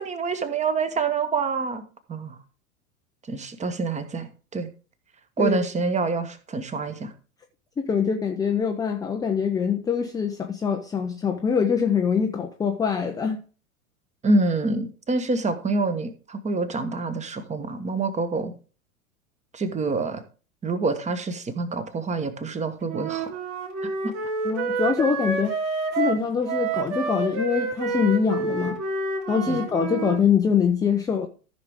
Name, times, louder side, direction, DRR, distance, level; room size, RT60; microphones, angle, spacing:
voice 1, 0.0-1.8 2.1-2.4 3.3-4.7 5.4-7.1 14.2-18.5 19.5-20.2 20.6-23.3 24.0-24.1 29.5-29.6, right 3 dB, 15° right, 1.1 m, -26 dB
voice 2, 7.8-13.4 24.4-25.6 26.0-28.8 29.3-31.3, left 6 dB, 10° left, 0.5 m, -24 dB
Wind instrument woodwind instrument, 22.9-30.2, right 4 dB, 35° right, 2.7 m, -28 dB
13.5 x 5.9 x 3.6 m
figure-of-eight pair, 90°, 44 cm